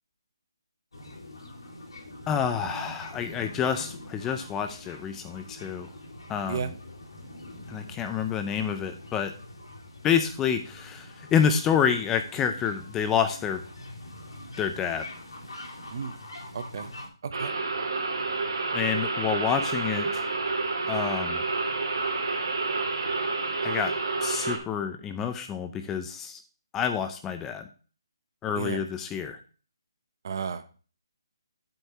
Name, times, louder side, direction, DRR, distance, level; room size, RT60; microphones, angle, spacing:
sound 1, 0.9-17.1, left 1 dB, 90° left, 3.5 m, -44 dB
voice 1, 2.3-5.9 6.3-6.7 7.7-9.3 10.0-13.6 14.6-15.1 18.7-20.2 20.9-21.4 23.6-23.9 24.2-26.4 26.7-27.7 28.4-29.4, left 7 dB, 10° left, 7 dB, 0.4 m, -28 dB
voice 2, 16.5-16.9 17.2-17.5 28.6-28.8 30.2-30.6, right 6 dB, 50° right, 11 dB, 0.9 m, -33 dB
sound 2, 17.3-24.6, right 3 dB, 70° right, 2.5 m, -29 dB
8.0 x 4.6 x 5.4 m, 0.38 s
hypercardioid pair, 165°, 2 cm